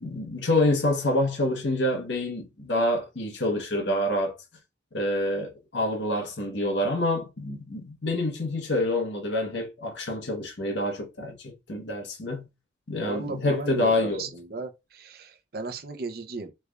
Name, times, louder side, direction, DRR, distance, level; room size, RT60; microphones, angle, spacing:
voice 1, 0.0-4.4 4.9-12.5 12.9-14.2, left 1 dB, 80° left, 1.0 m, -27 dB
voice 2, 13.0-16.5, right 3 dB, 55° right, 0.6 m, -35 dB
3.3 x 2.4 x 3.2 m
head